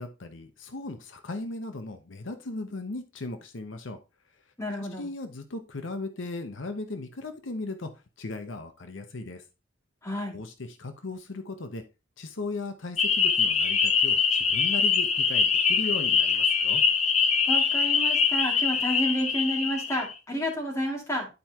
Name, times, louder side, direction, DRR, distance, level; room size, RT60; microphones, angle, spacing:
voice 1, 0.0-4.0 4.8-7.9 8.2-9.4 10.3-11.8 12.2-16.8, left 2 dB, 80° left, 7 dB, 0.8 m, -37 dB
voice 2, 4.6-5.1 10.0-10.4 17.5-21.3, equal, 15° left, -1 dB, 2.2 m, -30 dB
sound 1, 13.0-20.1, left 6 dB, 35° left, 0.7 m, -24 dB
11.0 x 4.6 x 2.9 m, 0.29 s
head